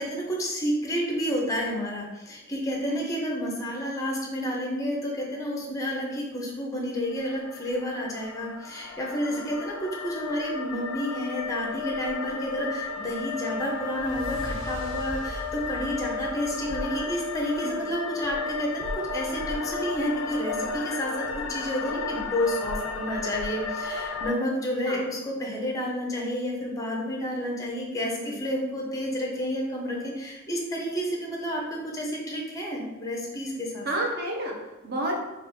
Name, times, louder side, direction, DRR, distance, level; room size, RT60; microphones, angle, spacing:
voice 1, 0.0-33.9, equal, 15° left, -2 dB, 0.5 m, -30 dB
sound 1, 7.0-24.3, left 4 dB, 75° left, 0.4 m, -33 dB
sound 2, 12.5-17.4, equal, 70° right, 1.3 m, -41 dB
voice 2, 28.0-28.4 33.8-35.2, right 1 dB, 50° right, -1 dB, 0.6 m, -31 dB
3.3 x 2.4 x 3.1 m, 1.0 s
head